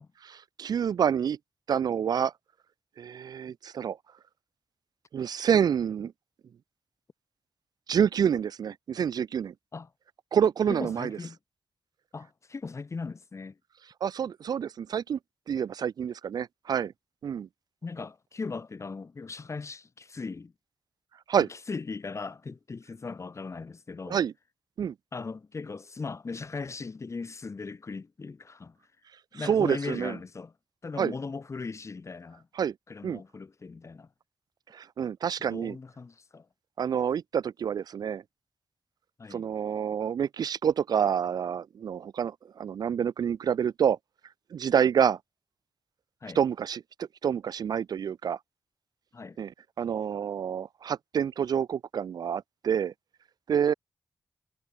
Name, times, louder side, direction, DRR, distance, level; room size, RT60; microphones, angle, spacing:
voice 1, 0.2-1.4 1.7-2.3 3.0-4.0 5.1-6.1 7.9-9.5 10.3-11.2 14.0-15.2 15.5-16.9 17.2-17.5 21.3-21.5 24.1-24.3 24.8-24.9 29.3-30.2 31.0-31.1 32.6-32.7 33.0-33.2 34.7-35.8 36.8-38.2 39.3-44.0 44.5-45.2 46.4-48.4 49.4-49.5 49.8-52.9 53.5-53.7, right 8 dB, 65° right, 0.3 m, -27 dB
voice 2, 10.7-11.4 12.1-13.6 17.8-20.5 21.4-24.2 25.1-28.8 29.3-30.5 30.8-32.5 32.9-34.1 35.5-36.5 39.2-39.5 46.2-46.4 49.1-49.4, left 4 dB, 40° left, 1.8 m, -38 dB
cardioid pair, 75°, 7 cm